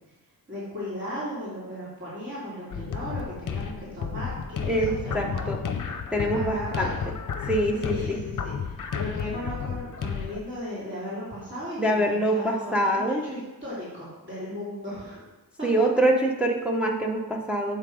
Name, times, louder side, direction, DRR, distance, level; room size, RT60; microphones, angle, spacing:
voice 1, 0.5-5.5 5.8-6.9 7.7-15.2, left 1 dB, 30° right, -10 dB, 3.0 m, -36 dB
sound 1, 2.7-10.4, left 6 dB, 60° left, 0.7 m, -32 dB
voice 2, 4.7-5.6 6.1-6.9 7.5-8.2 11.8-13.2 15.6-17.8, right 1 dB, 5° right, -1 dB, 0.7 m, -25 dB
7.6 x 5.7 x 5.0 m, 1.1 s
wide cardioid pair, 150°, 36 cm